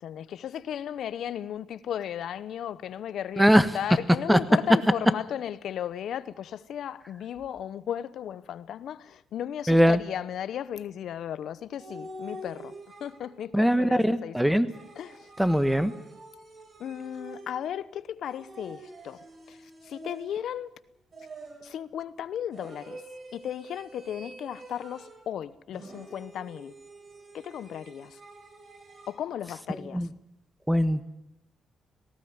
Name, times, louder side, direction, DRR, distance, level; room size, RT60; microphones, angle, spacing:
voice 1, 0.0-12.7 13.0-14.6 15.0-15.3 16.8-19.2 19.5-19.6 19.8-20.7 21.6-23.0 23.3-26.7 27.3-28.2 29.1-30.1, left 10 dB, 70° left, 0.9 m, -35 dB
voice 2, 3.4-3.7 4.3-4.4 9.7-10.0 13.5-14.7 15.4-15.9 29.9-30.1 30.7-31.0, equal, 5° right, 1.4 m, -21 dB
sound 1, 11.8-13.5 14.7-17.8 18.2-20.6 21.1-21.8 22.5-25.3 25.7-29.2, right 1 dB, 40° right, 4.9 m, -46 dB
18.5 x 18.0 x 9.6 m
cardioid pair, 105°, 0 cm